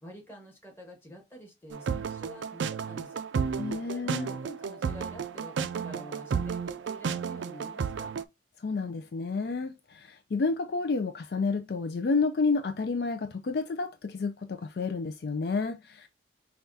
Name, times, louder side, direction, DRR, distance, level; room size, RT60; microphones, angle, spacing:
voice 1, 0.0-3.2 3.9-8.1, equal, 10° left, 1.3 m, -48 dB
sound 1, 1.7-8.2, right 6 dB, 80° right, 0.4 m, -32 dB
voice 2, 3.6-4.3 8.6-16.1, left 4 dB, 55° left, 0.4 m, -30 dB
5.6 x 2.3 x 2.7 m
head